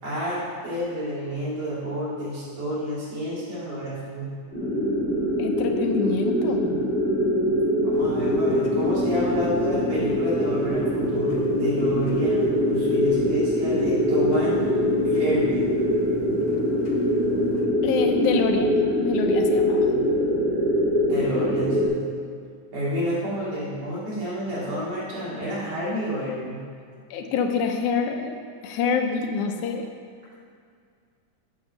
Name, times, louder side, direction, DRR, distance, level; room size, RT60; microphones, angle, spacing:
voice 1, 0.0-4.3 7.8-14.6 14.9-15.6 21.1-22.0 22.7-26.6, equal, 80° right, -9 dB, 4.4 m, -29 dB
sound 1, 4.5-21.9, equal, 20° left, 2.8 m, -23 dB
voice 2, 5.4-6.7 17.8-19.9 27.1-29.9, left 5 dB, 80° left, 3 dB, 2.3 m, -26 dB
sound 2, 7.9-17.6, left 1 dB, 65° left, 1.8 m, -42 dB
8.6 x 6.5 x 7.0 m, 2.2 s
omnidirectional pair, 3.5 m